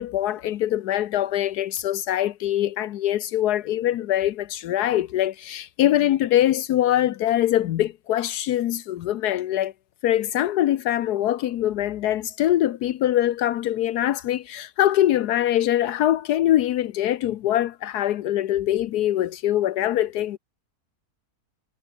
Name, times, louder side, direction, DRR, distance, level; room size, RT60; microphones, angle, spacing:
voice 1, 0.0-9.7 10.0-20.4, left 12 dB, 80° left, 1.3 m, -23 dB
omnidirectional pair, 1.7 m